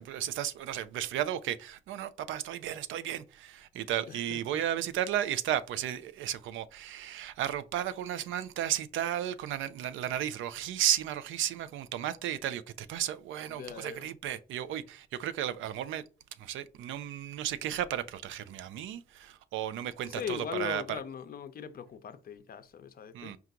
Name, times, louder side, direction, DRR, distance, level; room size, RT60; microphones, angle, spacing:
voice 1, 0.0-16.0 16.4-20.8 23.1-23.4, right 11 dB, 80° right, 0.5 m, -34 dB
voice 2, 4.1-4.6 13.5-14.1 20.1-23.4, left 8 dB, 50° left, 0.6 m, -40 dB
4.5 x 2.4 x 3.7 m
cardioid pair, 90°, 20 cm